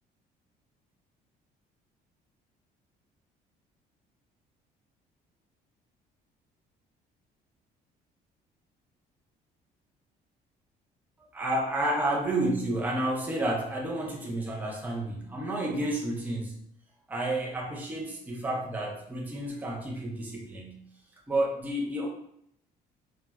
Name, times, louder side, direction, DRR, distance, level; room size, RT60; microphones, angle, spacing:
voice 1, 11.3-16.6 17.1-20.9 21.3-22.1, right 1 dB, 10° right, -2 dB, 0.5 m, -30 dB
3.0 x 2.2 x 2.2 m, 0.72 s
cardioid pair, 110°, 17 cm